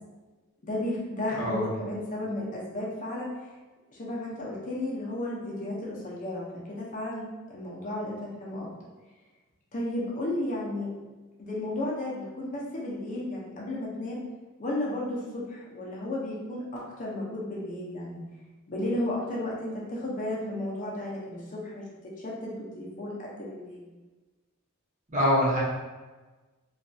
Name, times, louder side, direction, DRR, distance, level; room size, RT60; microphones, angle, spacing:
voice 1, 0.6-3.3 3.9-8.7 9.7-10.9 11.4-14.2 14.6-18.2 18.7-21.8 22.2-23.8, left 1 dB, 40° left, -5 dB, 0.5 m, -33 dB
voice 2, 25.1-25.6, left 1 dB, 35° right, -7 dB, 0.8 m, -24 dB
2.6 x 2.4 x 2.2 m, 1.2 s
head